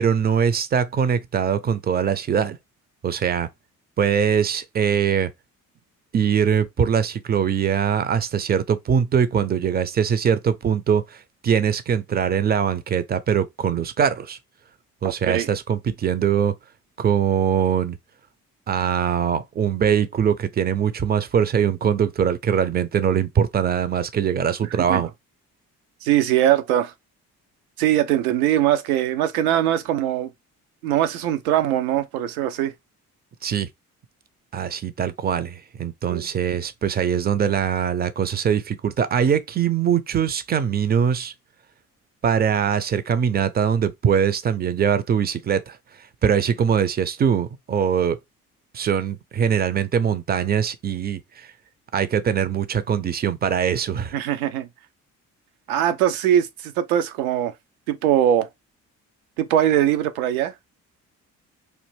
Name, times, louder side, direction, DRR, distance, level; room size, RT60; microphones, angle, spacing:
voice 1, 0.0-2.6 3.0-3.5 4.0-5.3 6.1-14.4 15.0-16.5 17.0-18.0 18.7-25.1 33.4-33.7 34.5-41.3 42.2-45.8 46.2-48.2 48.7-51.5 51.9-54.1, right 8 dB, 25° right, 0.4 m, -22 dB
voice 2, 26.0-26.9 27.8-30.3 30.8-32.7 36.1-36.3 54.1-54.7 55.7-57.5 57.9-58.5 59.4-60.5, right 11 dB, 80° right, 0.5 m, -21 dB
3.1 x 2.5 x 3.3 m
figure-of-eight pair, 45°, 43 cm